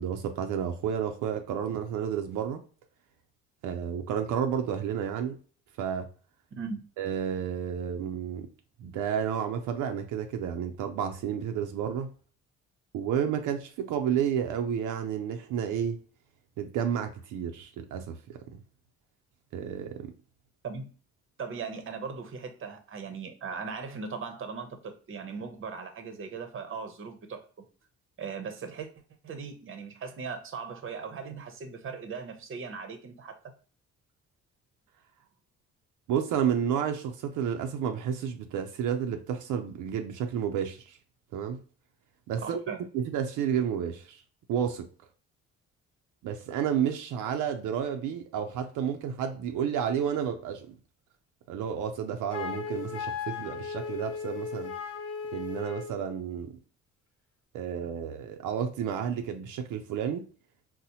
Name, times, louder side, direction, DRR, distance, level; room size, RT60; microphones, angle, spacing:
voice 1, 0.0-2.6 3.6-5.4 5.8-6.1 7.0-8.5 8.8-12.1 12.9-16.0 16.6-18.6 19.5-20.1 36.1-41.0 41.3-41.6 42.3-42.6 42.9-44.2 44.5-44.9 46.2-50.7 51.5-54.7 55.3-56.6 57.5-60.2, right 8 dB, 85° right, 0.5 m, -31 dB
voice 2, 6.5-6.8 20.6-20.9 21.4-27.4 28.2-28.9 29.2-33.3 42.4-42.8, right 5 dB, 45° right, 0.7 m, -38 dB
Wind instrument woodwind instrument, 52.3-56.0, left 6 dB, 50° left, 1.1 m, -36 dB
4.1 x 2.1 x 2.8 m
cardioid pair, 90°, 30 cm